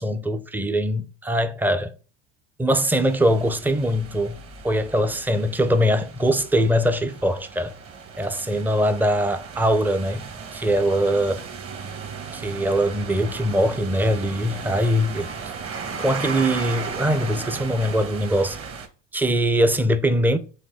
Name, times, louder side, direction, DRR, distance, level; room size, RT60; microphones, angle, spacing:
voice 1, 0.0-1.9 2.6-4.4 4.6-7.7 8.2-11.4 12.3-15.3 16.0-18.6 19.1-20.4, equal, 5° right, 0.6 m, -22 dB
sound 1, 2.9-18.9, right 5 dB, 35° right, 1.3 m, -36 dB
6.4 x 3.1 x 4.8 m
hypercardioid pair, 90°, 38 cm